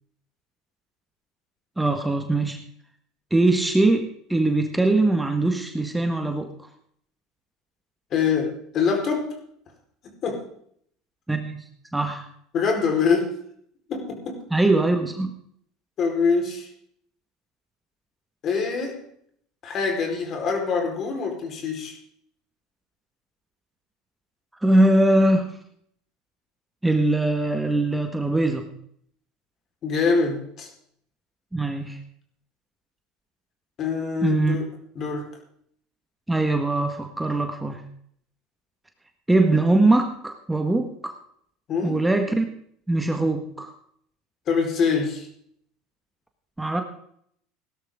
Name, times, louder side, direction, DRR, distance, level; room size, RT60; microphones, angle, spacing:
voice 1, 1.8-2.6 3.3-6.5 11.3-11.6 11.9-12.3 14.5-15.3 24.6-25.5 26.8-28.7 31.5-32.0 34.2-34.6 36.3-37.8 39.3-41.1 41.8-42.5 42.9-43.7 46.6-46.8, right 2 dB, 10° right, 5 dB, 1.7 m, -21 dB
voice 2, 8.1-9.4 10.2-10.5 12.5-13.4 13.9-14.5 16.0-16.7 18.4-19.0 19.6-22.0 29.8-30.7 33.8-34.7 34.9-35.4 41.7-42.0 44.5-45.3, left 5 dB, 45° left, 2 dB, 4.6 m, -24 dB
17.5 x 12.5 x 3.8 m, 0.65 s
hypercardioid pair, 85°, 0 cm